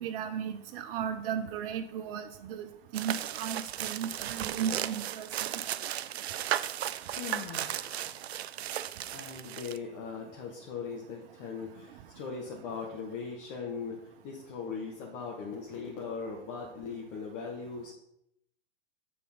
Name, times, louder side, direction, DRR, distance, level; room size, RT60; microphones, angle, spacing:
voice 1, 0.0-2.7 2.9-5.5, right 8 dB, 60° right, 7 dB, 0.8 m, -35 dB
sound 1, 2.9-9.8, right 11 dB, 85° right, 0.5 m, -35 dB
voice 2, 7.1-8.2 9.1-17.9, left 5 dB, 50° left, -2 dB, 1.6 m, -40 dB
7.4 x 4.3 x 5.6 m, 0.80 s
hypercardioid pair, 110°, 31 cm